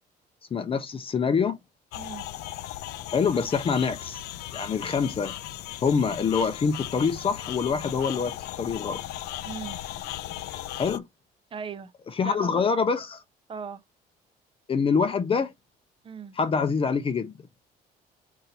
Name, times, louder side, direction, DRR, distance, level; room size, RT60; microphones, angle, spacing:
voice 1, 0.5-1.6 3.1-4.2 4.5-5.3 5.8-9.0 10.8-11.0 12.1-13.2 14.7-15.5 16.3-17.3, left 5 dB, 35° left, 0.6 m, -25 dB
sound 1, 1.9-11.0, left 13 dB, 80° left, 0.5 m, -37 dB
voice 2, 1.9-2.3 9.4-9.8 11.5-11.9 12.2-12.6 13.5-13.8 16.0-16.4, right 6 dB, 30° right, 0.6 m, -38 dB
3.9 x 2.8 x 4.1 m
cardioid pair, 110°, 17 cm